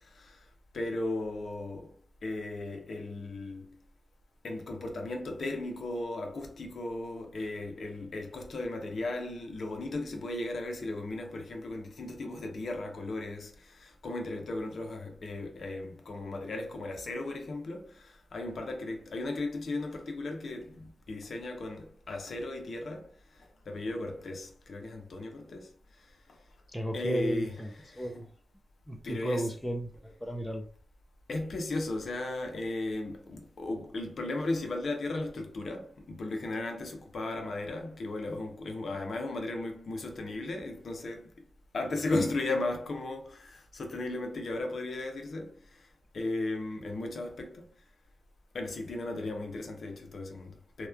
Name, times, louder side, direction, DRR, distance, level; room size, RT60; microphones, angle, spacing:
voice 1, 0.7-1.9 2.2-3.8 4.4-23.1 23.4-25.7 26.3-26.4 26.9-28.2 29.0-29.5 31.3-41.3 41.7-45.9 46.1-47.7 48.5-50.9, left 2 dB, 65° left, 0.6 m, -36 dB
voice 2, 26.7-28.3 28.9-30.6, right 1 dB, 5° left, 0.4 m, -34 dB
2.9 x 2.2 x 2.2 m
wide cardioid pair, 125°, 0 cm